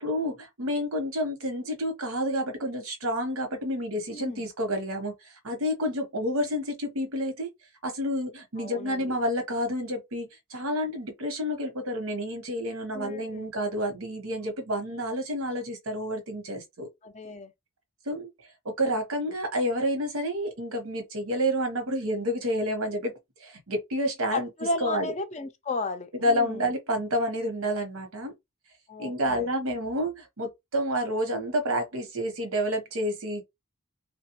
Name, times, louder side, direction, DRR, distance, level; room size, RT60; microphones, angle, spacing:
voice 1, 0.0-5.1 5.4-7.5 7.8-16.9 18.1-18.3 18.6-23.1 23.4-24.5 24.8-25.1 26.1-28.3 29.0-33.4, equal, 90° right, 1.0 m, -29 dB
voice 2, 4.1-4.5 8.6-9.1 12.9-13.5 17.0-17.5 24.3-26.7 28.9-29.5, left 2 dB, 30° left, 0.4 m, -34 dB
3.2 x 2.2 x 2.9 m
head